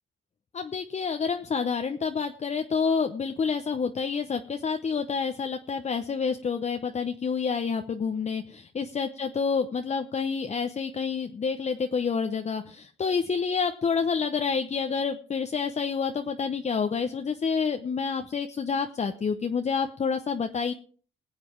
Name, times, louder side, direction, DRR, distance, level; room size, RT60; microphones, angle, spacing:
voice 1, 0.5-20.7, left 5 dB, 35° left, 6 dB, 0.9 m, -28 dB
20.5 x 7.8 x 4.5 m, 0.42 s
cardioid pair, 90°, 20 cm